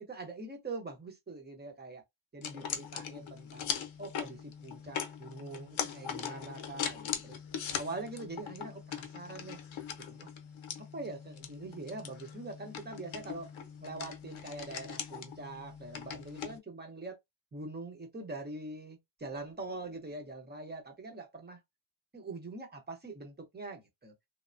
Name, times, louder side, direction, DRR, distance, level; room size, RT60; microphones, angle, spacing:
voice 1, 0.1-2.0 2.3-3.7 4.0-7.4 7.8-9.6 10.1-10.3 10.8-13.5 13.8-17.2 17.5-21.6 22.1-24.1, right 2 dB, 20° right, 0.8 m, -43 dB
sound 1, 2.4-16.6, left 8 dB, 70° left, 0.7 m, -41 dB
3.2 x 2.0 x 2.5 m
wide cardioid pair, 170°, 49 cm